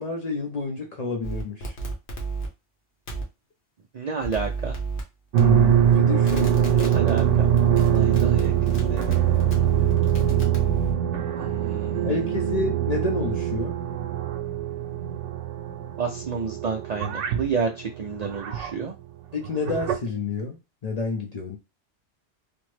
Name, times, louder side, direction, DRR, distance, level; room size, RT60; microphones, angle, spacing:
voice 1, 0.0-1.8 5.4-6.5 12.0-13.7 19.3-21.6, left 3 dB, 50° left, 0.5 m, -29 dB
sound 1, 1.2-2.5 3.1-3.2 4.2-5.0 5.4-5.9 6.2-10.9, right 4 dB, 65° left, 1.1 m, -31 dB
voice 2, 3.9-4.8 6.7-7.5 7.9-9.2 11.4-12.5 16.0-18.9, right 5 dB, 60° right, 0.4 m, -30 dB
sound 2, 5.3-18.8 19.4-20.0, right 10 dB, 85° right, 0.9 m, -23 dB
3.4 x 2.0 x 3.1 m
omnidirectional pair, 1.2 m